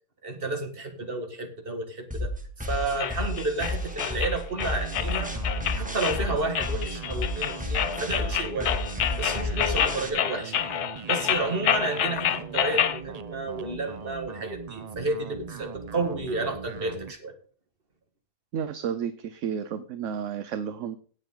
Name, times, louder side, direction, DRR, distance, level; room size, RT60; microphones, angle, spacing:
voice 1, 0.2-5.3 5.7-8.8 9.2-10.6 11.1-17.3, right 2 dB, 35° right, 5 dB, 2.1 m, -31 dB
sound 1, 2.1-10.1, left 1 dB, 5° right, 2.1 m, -32 dB
sound 2, 3.0-13.0, left 10 dB, 85° left, 1.4 m, -28 dB
sound 3, 4.7-17.1, right 6 dB, 85° right, 0.3 m, -41 dB
voice 2, 18.5-21.0, right 8 dB, 60° right, 11 dB, 1.0 m, -32 dB
17.5 x 7.2 x 3.8 m, 0.42 s
omnidirectional pair, 1.6 m